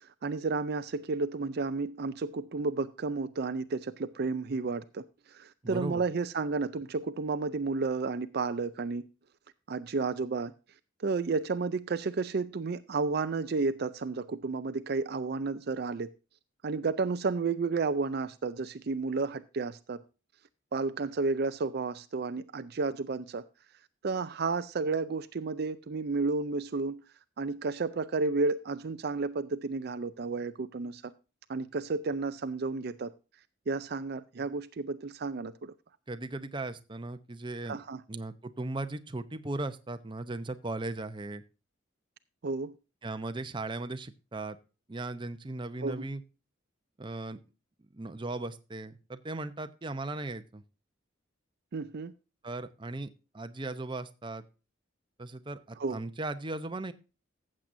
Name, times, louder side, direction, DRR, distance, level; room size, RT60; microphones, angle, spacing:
voice 1, 0.0-9.0 9.7-10.5 11.0-16.1 16.6-20.0 20.7-23.4 24.0-27.0 27.4-31.1 31.5-33.1 33.7-35.7 37.7-38.0 42.4-42.8 45.8-46.1 51.7-52.1 55.8-56.0, right 4 dB, 55° right, 0.5 m, -32 dB
voice 2, 5.6-6.0 36.1-37.8 38.1-41.4 43.0-44.6 44.9-46.2 47.0-47.4 47.9-50.6 52.4-53.1 53.3-54.4 55.2-56.9, right 2 dB, 25° right, 0.7 m, -37 dB
14.5 x 7.6 x 2.6 m
head